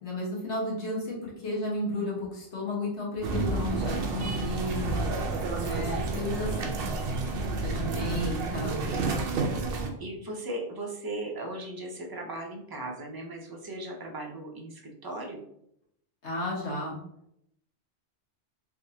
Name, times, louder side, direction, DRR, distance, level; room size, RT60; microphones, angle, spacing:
voice 1, 0.0-5.1 5.6-6.8 7.6-8.8 16.2-17.0, left 1 dB, 90° left, -4 dB, 1.5 m, -33 dB
sound 1, 3.2-9.9, right 3 dB, 65° right, 0.8 m, -30 dB
voice 2, 7.7-8.4 10.0-15.4, right 1 dB, 30° right, 0 dB, 0.4 m, -38 dB
3.5 x 2.6 x 2.7 m, 0.76 s
omnidirectional pair, 1.1 m